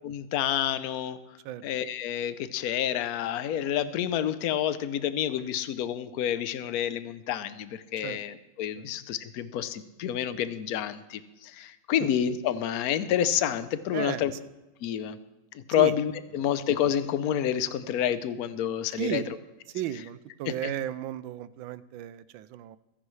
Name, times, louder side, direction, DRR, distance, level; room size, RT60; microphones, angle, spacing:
voice 1, 0.0-1.2 1.6-14.3 14.8-15.2 15.5-19.2 20.5-20.7, left 10 dB, 65° left, 13 dB, 1.0 m, -29 dB
voice 2, 13.9-14.3 15.8-15.9 19.0-19.3 19.7-22.8, right 12 dB, 85° right, 16 dB, 1.4 m, -34 dB
24.5 x 10.0 x 3.2 m, 1.0 s
omnidirectional pair, 2.1 m